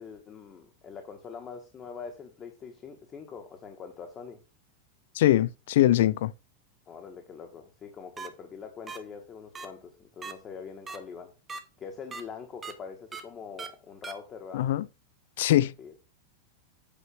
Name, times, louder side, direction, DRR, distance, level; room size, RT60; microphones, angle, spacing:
voice 1, 0.0-4.4 6.9-11.3 11.8-14.7 15.8-15.9, left 6 dB, 25° left, 1.2 m, -43 dB
voice 2, 5.2-6.3 14.5-14.9 15.4-15.7, left 14 dB, 75° left, 0.4 m, -22 dB
sound 1, 8.2-8.3 8.9-9.0 9.5-9.7 10.2-10.3 10.9-11.0 11.5-11.6 12.1-12.2 12.6-12.7 13.1-13.2 13.6-13.7 14.0-14.1, right 5 dB, 15° right, 0.9 m, -38 dB
8.4 x 3.1 x 6.3 m
supercardioid pair, 150°, 0 cm